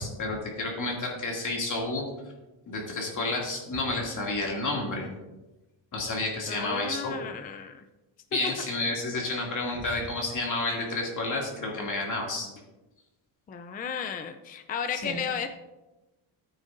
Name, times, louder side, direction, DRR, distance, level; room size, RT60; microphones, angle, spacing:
voice 1, 0.0-2.0 2.7-5.1 5.9-7.2 8.3-12.5 15.0-15.2, left 2 dB, 40° left, -1 dB, 2.4 m, -30 dB
voice 2, 6.5-7.8 13.5-15.5, left 7 dB, 20° left, 7 dB, 0.4 m, -34 dB
14.5 x 8.9 x 2.6 m, 1.1 s
cardioid pair, 135°, 48 cm